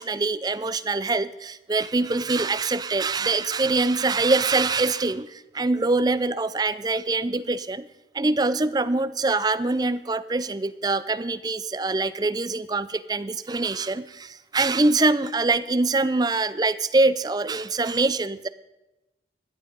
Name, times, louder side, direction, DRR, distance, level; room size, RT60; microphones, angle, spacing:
voice 1, 0.0-7.9 8.1-18.5, right 3 dB, 20° right, 15 dB, 0.5 m, -24 dB
16.0 x 11.0 x 5.3 m, 1.0 s
head